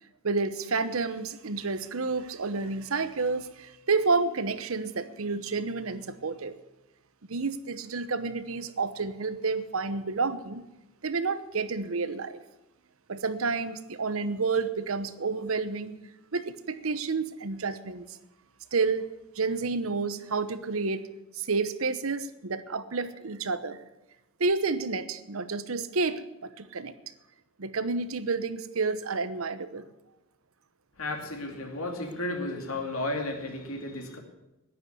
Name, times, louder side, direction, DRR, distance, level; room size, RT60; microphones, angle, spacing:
voice 1, 0.2-6.5 7.3-10.6 11.0-12.4 13.1-16.0 16.3-18.2 18.7-19.1 19.4-21.1 21.3-23.8 24.4-26.9 27.6-29.9, right 4 dB, 75° right, 13 dB, 0.9 m, -30 dB
voice 2, 31.0-34.2, left 2 dB, 80° left, 4 dB, 2.7 m, -33 dB
10.5 x 10.0 x 9.4 m, 0.99 s
head